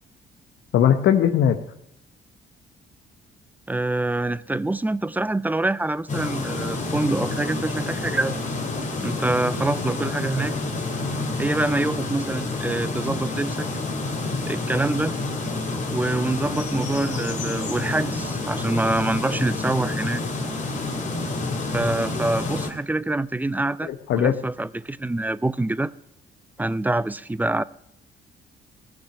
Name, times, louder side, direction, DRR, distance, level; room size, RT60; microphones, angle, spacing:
voice 1, 0.7-1.6 23.8-24.3, left 9 dB, 70° left, 0.9 m, -19 dB
voice 2, 3.7-8.4 9.0-10.6 11.4-13.7 14.5-15.1 15.9-20.2 21.7-25.9 26.6-27.6, right 2 dB, 10° right, 0.4 m, -25 dB
sound 1, 6.1-22.7, left 3 dB, 35° left, 2.3 m, -28 dB
16.0 x 6.1 x 8.3 m
cardioid pair, 90°, 20 cm